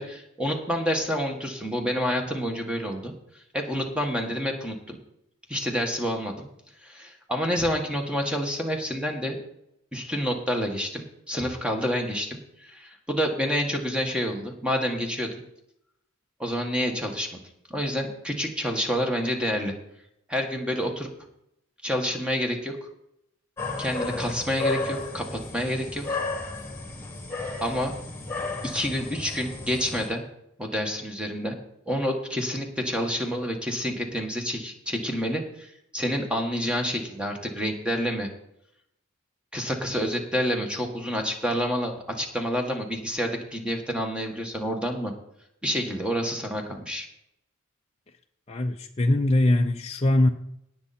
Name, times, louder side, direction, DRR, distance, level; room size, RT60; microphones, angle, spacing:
voice 1, 0.0-3.1 3.5-5.0 5.5-6.5 6.8-9.4 9.9-15.3 16.4-17.4 17.7-19.7 20.3-21.1 21.8-22.8 23.8-26.2 27.6-27.9 28.6-30.2 30.6-31.6 31.9-38.3 39.5-45.1 45.6-47.1, equal, 5° right, 1.6 m, -28 dB
sound 1, 23.6-30.1, left 3 dB, 10° left, 2.2 m, -33 dB
voice 2, 48.5-50.3, left 1 dB, 30° left, 0.6 m, -22 dB
18.0 x 6.8 x 4.3 m
head